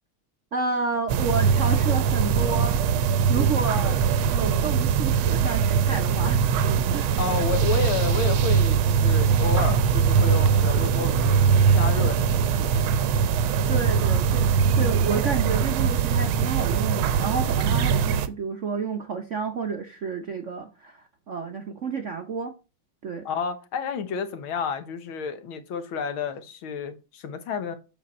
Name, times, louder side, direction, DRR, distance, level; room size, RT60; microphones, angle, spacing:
voice 1, 0.5-2.8 3.3-4.0 4.3-6.5 6.9-7.2 9.7-9.8 13.7-22.5 23.0-23.2, right 4 dB, 60° right, 0.8 m, -30 dB
sound 1, 1.1-18.3, right 6 dB, 80° right, 1.5 m, -21 dB
voice 2, 7.2-11.4 11.7-12.9 23.3-27.8, left 5 dB, 80° left, 1.9 m, -30 dB
7.5 x 6.4 x 4.2 m
omnidirectional pair, 2.3 m